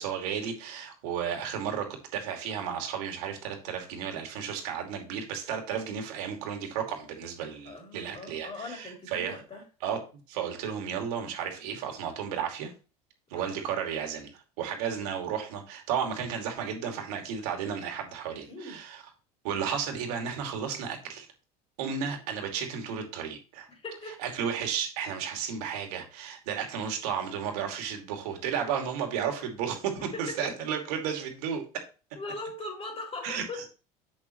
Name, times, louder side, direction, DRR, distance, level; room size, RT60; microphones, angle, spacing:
voice 1, 0.0-9.4 9.8-10.0 10.3-12.7 13.3-19.0 19.4-21.3 21.8-23.7 24.2-31.6 33.2-33.4, right 7 dB, 75° right, 2.6 m, -33 dB
voice 2, 7.7-9.6 13.3-13.5 18.3-18.8 23.7-24.2 30.3-30.4 32.2-33.6, left 2 dB, 30° left, 4.0 m, -40 dB
7.9 x 7.1 x 3.1 m
hypercardioid pair, 85°, 20 cm